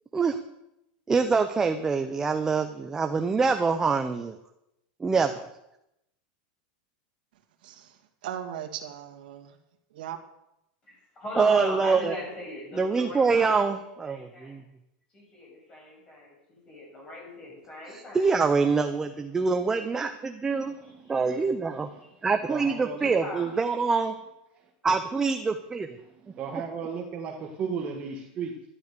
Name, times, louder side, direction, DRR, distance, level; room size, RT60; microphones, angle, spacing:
voice 1, 1.1-4.4 5.0-5.5 11.4-12.1 12.7-14.6 17.9-20.7 21.1-21.9 22.2-24.1 24.8-26.0 26.5-26.6, right 4 dB, 10° right, 7 dB, 0.7 m, -25 dB
voice 2, 7.6-9.6 9.9-10.2, right 10 dB, 80° right, 4 dB, 2.0 m, -38 dB
voice 3, 11.2-14.6 15.1-18.3 20.8-21.4 23.0-24.0, left 1 dB, 20° left, -2 dB, 7.2 m, -40 dB
voice 4, 20.5-21.2 21.7-22.0 22.5-23.0 26.0-28.6, right 6 dB, 25° right, 2 dB, 1.5 m, -36 dB
12.5 x 11.5 x 6.8 m, 0.85 s
supercardioid pair, 165°, 5 cm